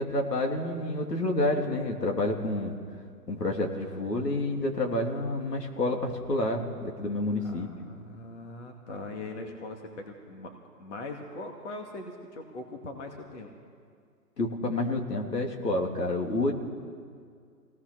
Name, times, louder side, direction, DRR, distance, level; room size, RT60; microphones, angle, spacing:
voice 1, 0.0-2.7 3.3-7.7 14.4-16.5, left 2 dB, 75° left, 1 dB, 3.4 m, -29 dB
voice 2, 7.4-13.5, left 2 dB, 45° left, 3 dB, 2.4 m, -41 dB
24.5 x 18.0 x 6.4 m, 2.2 s
figure-of-eight pair, 145°, 49 cm